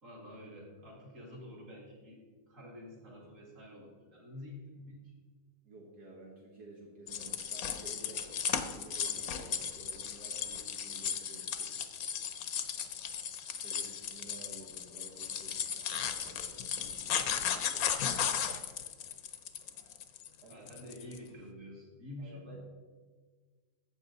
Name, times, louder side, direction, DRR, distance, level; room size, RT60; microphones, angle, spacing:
voice 1, 0.0-5.1 20.5-22.6, left 1 dB, 50° right, -2 dB, 2.8 m, -48 dB
voice 2, 5.6-8.3 8.5-11.7 13.6-18.4 20.4-20.7 22.2-22.6, right 2 dB, 75° right, -3 dB, 2.0 m, -53 dB
sound 1, 7.1-21.2, left 8 dB, 65° left, 1.2 m, -36 dB
14.0 x 7.7 x 4.0 m, 1.5 s
omnidirectional pair, 1.7 m